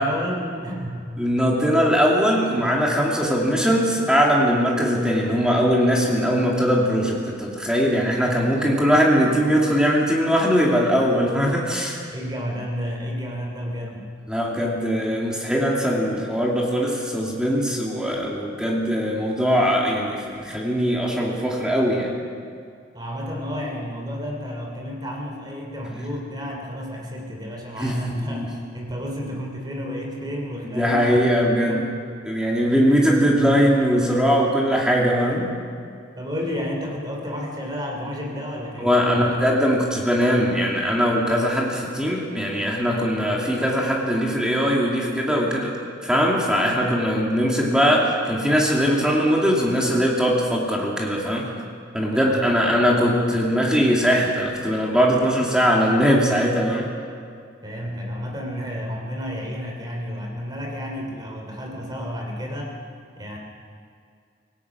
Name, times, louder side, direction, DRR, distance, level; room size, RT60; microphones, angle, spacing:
voice 1, 0.0-1.1 12.1-14.1 22.9-31.3 31.7-31.9 36.2-39.4 39.7-39.8 52.1-52.8 57.6-62.8 63.2-63.4, equal, 20° right, 0 dB, 3.1 m, -31 dB
voice 2, 1.2-12.0 14.3-22.1 27.8-28.5 30.6-31.8 32.2-35.5 38.8-45.7 46.0-51.5 51.9-56.9, equal, 5° right, -3 dB, 2.6 m, -21 dB
26.5 x 17.0 x 6.1 m, 2.2 s
head